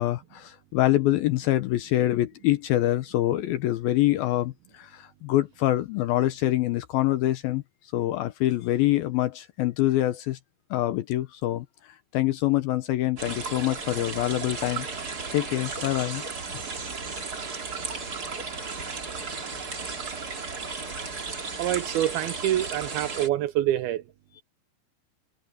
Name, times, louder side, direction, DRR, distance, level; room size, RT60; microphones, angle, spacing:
voice 1, 0.0-7.6 7.9-10.4 10.7-11.7 12.1-14.9 15.3-16.2, left 14 dB, 80° left, 2.3 m, -25 dB
sound 1, 13.2-23.3, right 4 dB, 30° right, 2.1 m, -34 dB
voice 2, 21.6-24.0, right 13 dB, 85° right, 2.3 m, -26 dB
omnidirectional pair, 5.0 m